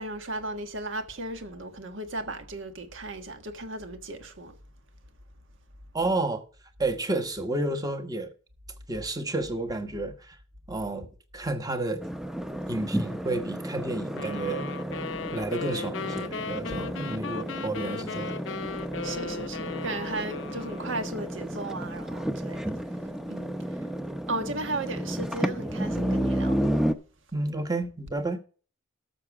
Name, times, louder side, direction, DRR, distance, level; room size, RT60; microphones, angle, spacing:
voice 1, 0.0-4.5 19.0-22.6 23.0-23.9 24.3-26.6, right 2 dB, 65° right, 1.5 m, -35 dB
voice 2, 5.9-6.4 6.8-8.3 8.9-10.4 10.7-12.1 12.7-14.7 15.3-18.4 27.3-28.4, right 2 dB, 20° right, 1.2 m, -31 dB
sound 1, 12.0-26.9, equal, ahead, 0.7 m, -32 dB
sound 2, 14.2-21.3, left 4 dB, 65° left, 0.6 m, -37 dB
12.5 x 6.9 x 4.8 m
head